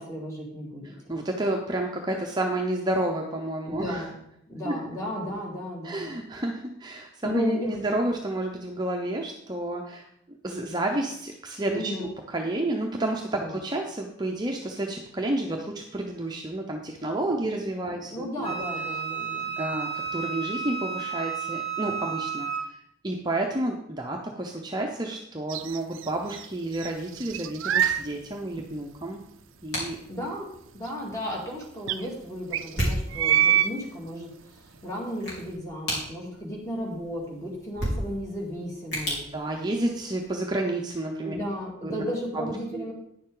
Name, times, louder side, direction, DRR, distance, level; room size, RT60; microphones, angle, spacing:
voice 1, 0.0-1.1 3.7-4.2 4.5-6.1 7.2-7.7 11.7-12.1 13.3-13.6 17.3-17.4 17.9-19.6 30.1-39.2 41.2-42.9, equal, 15° left, -3 dB, 2.2 m, -34 dB
voice 2, 0.8-4.1 4.6-4.8 5.8-10.1 10.4-18.5 19.6-22.8 23.0-29.2 29.6-30.0 39.3-41.3 41.8-42.1 42.3-42.9, right 1 dB, 20° right, 1 dB, 0.7 m, -30 dB
Wind instrument woodwind instrument, 18.4-22.7, right 6 dB, 30° left, 1.5 m, -32 dB
sound 1, 25.5-26.5 26.7-28.1 28.6-28.7 30.9-31.0 31.1-31.2 31.9-32.0 32.5-33.8, right 11 dB, 75° right, 0.4 m, -25 dB
sound 2, 26.7-40.3, equal, 55° left, 3.5 m, -37 dB
9.7 x 7.0 x 3.8 m, 0.75 s
head